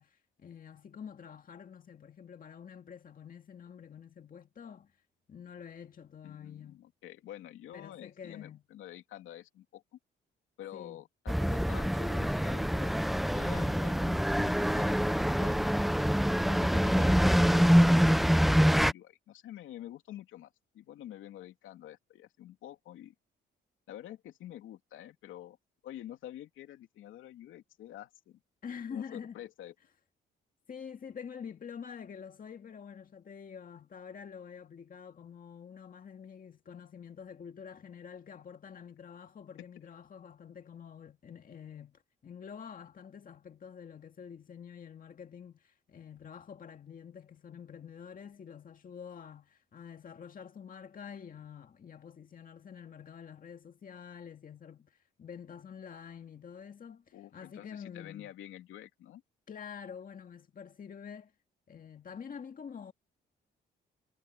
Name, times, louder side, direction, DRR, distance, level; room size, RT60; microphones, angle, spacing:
voice 1, 0.0-4.9 5.3-6.8 7.7-8.6 10.7-11.0 13.5-13.8 28.6-29.4 30.7-58.3 59.5-61.3 61.7-62.9, left 7 dB, 45° left, 2.0 m, -47 dB
voice 2, 6.2-9.8 10.6-13.0 13.3-15.8 16.5-23.1 23.9-25.6 25.8-28.4 28.9-29.7 57.1-59.2, left 12 dB, 85° left, 2.9 m, -48 dB
sound 1, 11.3-18.9, equal, ahead, 0.5 m, -25 dB
cardioid pair, 90°, 20 cm